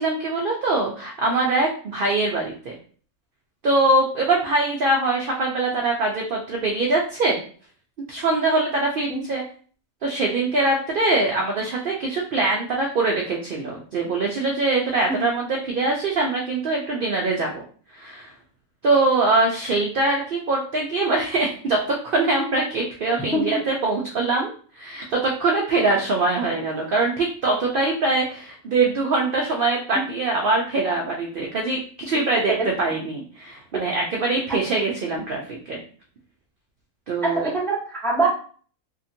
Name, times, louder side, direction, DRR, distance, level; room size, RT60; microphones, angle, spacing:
voice 1, 0.0-2.8 3.6-7.4 8.1-9.4 10.0-17.6 17.9-18.3 18.8-35.8 37.1-37.5, right 2 dB, 65° right, -1 dB, 0.5 m, -23 dB
voice 2, 37.2-38.3, right 2 dB, ahead, -5 dB, 0.6 m, -23 dB
2.8 x 2.5 x 2.6 m, 0.43 s
omnidirectional pair, 1.4 m